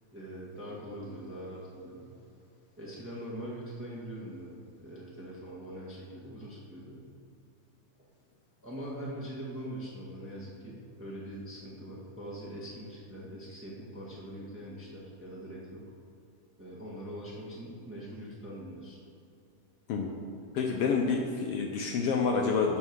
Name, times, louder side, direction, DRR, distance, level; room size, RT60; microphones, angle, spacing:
voice 1, 0.1-2.1 2.8-4.5 4.8-7.1 8.6-15.8 16.6-19.0, right 1 dB, 20° right, -6 dB, 0.3 m, -42 dB
voice 2, 20.5-22.8, left 5 dB, 80° left, 1 dB, 1.3 m, -28 dB
12.0 x 4.5 x 6.2 m, 2.6 s
omnidirectional pair, 3.4 m